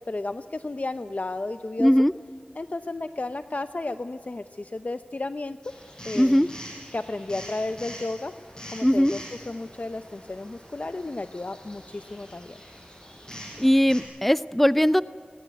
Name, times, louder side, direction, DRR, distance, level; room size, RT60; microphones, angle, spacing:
voice 1, 0.0-1.9 2.6-5.7 6.0-6.5 6.9-8.3 8.7-9.2 9.5-12.6, left 2 dB, 50° left, 10 dB, 0.7 m, -33 dB
voice 2, 1.8-2.1 6.2-6.5 8.8-9.1 13.6-15.0, equal, 5° left, 16 dB, 0.5 m, -19 dB
sound 1, 5.6-14.0, equal, 25° left, 7.6 m, -44 dB
19.5 x 19.0 x 9.5 m, 2.2 s
wide cardioid pair, 45°, 3 cm